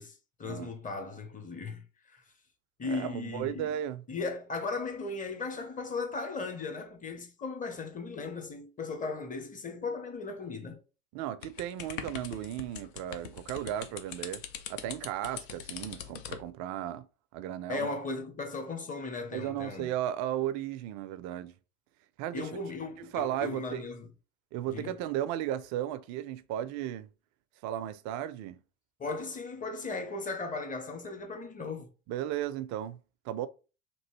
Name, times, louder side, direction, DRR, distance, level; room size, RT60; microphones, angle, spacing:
voice 1, 0.0-2.2 2.8-3.7 4.1-10.8 17.7-19.9 22.3-24.1 24.7-25.0 29.0-31.9, left 3 dB, 20° left, 0.8 m, -37 dB
voice 2, 2.8-4.0 11.1-14.4 14.7-17.1 17.3-17.9 19.3-21.5 22.2-22.5 23.1-23.8 24.5-27.1 27.6-28.6 32.1-33.0 33.2-33.5, right 11 dB, 45° right, 0.5 m, -35 dB
sound 1, 11.4-16.5, left 8 dB, 70° left, 0.7 m, -42 dB
2.9 x 2.6 x 3.1 m
hypercardioid pair, 85°, 39 cm